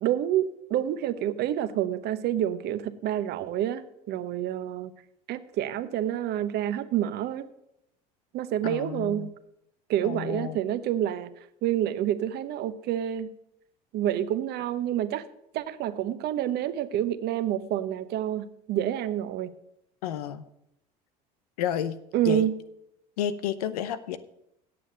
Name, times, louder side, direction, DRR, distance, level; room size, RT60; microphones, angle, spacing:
voice 1, 0.0-4.9 5.3-7.5 8.3-9.3 9.9-11.3 11.6-13.3 13.9-15.3 15.5-19.5 22.1-22.5, right 11 dB, 60° right, 12 dB, 0.9 m, -28 dB
voice 2, 8.6-9.3 10.0-10.6 20.0-20.4 21.6-22.5 23.2-24.2, left 10 dB, 90° left, 14 dB, 0.8 m, -31 dB
8.7 x 7.5 x 7.8 m, 0.80 s
supercardioid pair, 85°, 19 cm